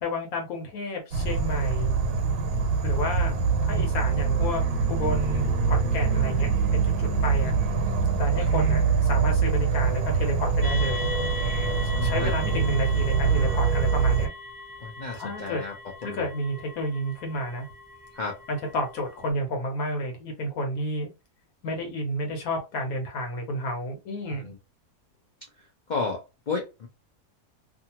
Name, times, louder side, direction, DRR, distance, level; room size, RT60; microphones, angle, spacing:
voice 1, 0.0-1.9 2.8-3.3 3.6-7.6 8.2-11.1 12.0-14.3 15.1-15.6 16.0-17.7 18.5-21.1 21.6-24.5, left 1 dB, 70° left, 1.1 m, -31 dB
Insect / Frog, 1.1-14.3, right 5 dB, 85° right, 1.2 m, -24 dB
voice 2, 7.0-7.3 8.4-8.5 11.9-12.3 14.8-15.7 16.0-16.3 18.2-18.4 24.3-24.6 25.9-26.9, left 4 dB, 90° left, 0.4 m, -33 dB
sound 1, 10.6-19.3, left 2 dB, 20° left, 0.5 m, -40 dB
2.6 x 2.4 x 2.8 m
omnidirectional pair, 1.6 m